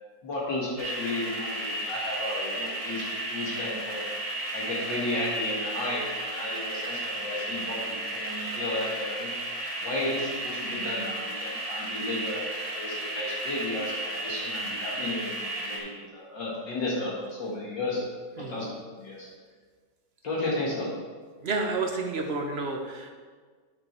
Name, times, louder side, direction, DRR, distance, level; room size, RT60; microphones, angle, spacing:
voice 1, 0.2-4.0 4.5-9.3 9.8-18.0 18.5-18.6 19.0-19.3 20.2-20.9, left 2 dB, 70° left, -5 dB, 2.4 m, -33 dB
sound 1, 0.8-15.8, right 1 dB, 30° right, 1.8 m, -33 dB
voice 2, 21.4-23.1, right 3 dB, 50° right, 3 dB, 0.7 m, -30 dB
9.8 x 6.4 x 4.4 m, 1.5 s
omnidirectional pair, 2.0 m